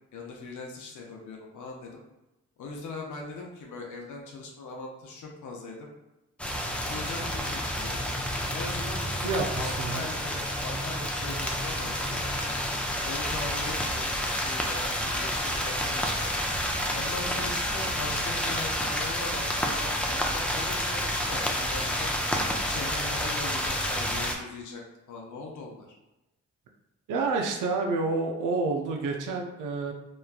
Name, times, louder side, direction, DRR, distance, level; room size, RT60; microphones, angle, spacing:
voice 1, 0.1-2.0 2.6-5.9 6.8-8.0 8.5-12.6 13.0-16.3 16.9-22.1 22.6-24.8 25.1-25.9, left 3 dB, 75° left, -1 dB, 0.6 m, -40 dB
sound 1, 6.4-24.4, equal, 5° left, 0.4 m, -29 dB
voice 2, 9.2-10.1 27.1-29.9, right 3 dB, 85° right, 2 dB, 0.5 m, -29 dB
3.0 x 2.1 x 2.4 m, 0.96 s
cardioid pair, 55°, 31 cm